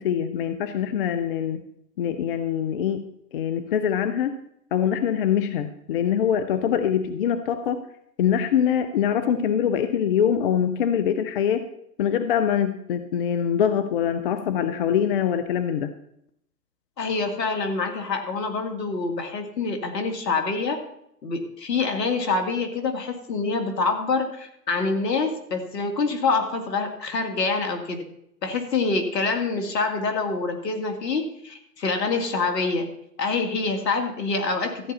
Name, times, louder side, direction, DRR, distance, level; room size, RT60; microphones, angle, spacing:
voice 1, 0.0-1.6 2.0-3.0 3.3-4.4 4.7-7.8 8.2-11.6 12.0-15.9, left 9 dB, 35° left, 11 dB, 0.6 m, -24 dB
voice 2, 17.0-20.8 21.2-28.0 28.4-32.9 33.2-34.9, left 4 dB, 70° left, 5 dB, 2.5 m, -26 dB
14.0 x 9.5 x 4.2 m, 0.74 s
hypercardioid pair, 135°, 50 cm